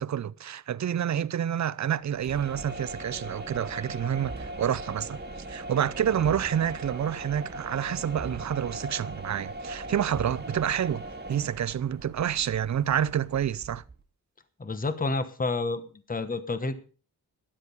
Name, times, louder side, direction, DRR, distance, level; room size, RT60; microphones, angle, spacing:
voice 1, 0.0-13.8, right 9 dB, 50° right, 0.5 m, -28 dB
sound 1, 2.1-14.0, right 2 dB, 25° right, 1.9 m, -40 dB
voice 2, 14.6-15.8 16.1-16.7, left 3 dB, 25° left, 1.1 m, -29 dB
13.0 x 10.0 x 5.4 m
wide cardioid pair, 145°, 37 cm